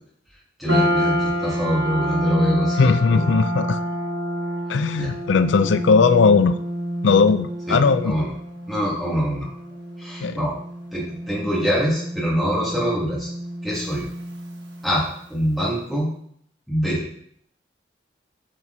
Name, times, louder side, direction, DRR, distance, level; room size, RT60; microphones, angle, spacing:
voice 1, 0.6-3.3 5.0-5.1 7.7-7.8 8.0-8.3 8.7-9.5 10.0-10.5 10.9-13.3 13.6-14.1 14.8-15.0 15.3-16.1 16.7-17.0, equal, ahead, -7 dB, 2.9 m, -24 dB
sound 1, 0.7-15.1, equal, 85° right, 1.9 m, -28 dB
voice 2, 2.8-3.8 4.7-6.6 7.0-8.1 10.2-10.4, left 5 dB, 85° left, 11 dB, 0.4 m, -18 dB
9.0 x 5.6 x 4.2 m, 0.67 s
head